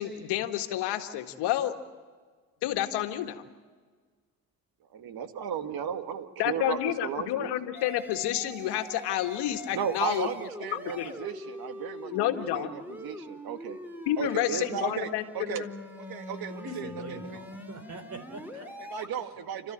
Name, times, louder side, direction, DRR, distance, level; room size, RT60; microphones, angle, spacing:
voice 1, 0.0-1.8 2.6-3.4 6.4-10.3 10.7-11.1 12.1-12.7 14.1-15.7, left 13 dB, 80° left, 7 dB, 1.9 m, -29 dB
voice 2, 4.9-7.5 9.7-13.8 14.2-15.6 16.0-17.4 18.8-19.7, right 8 dB, 65° right, 8 dB, 2.0 m, -35 dB
sound 1, 7.7-19.1, left 1 dB, 5° right, 4.2 m, -43 dB
voice 3, 16.6-18.7, right 2 dB, 40° right, 11 dB, 3.6 m, -42 dB
29.5 x 13.5 x 8.9 m, 1.5 s
supercardioid pair, 70°, 40 cm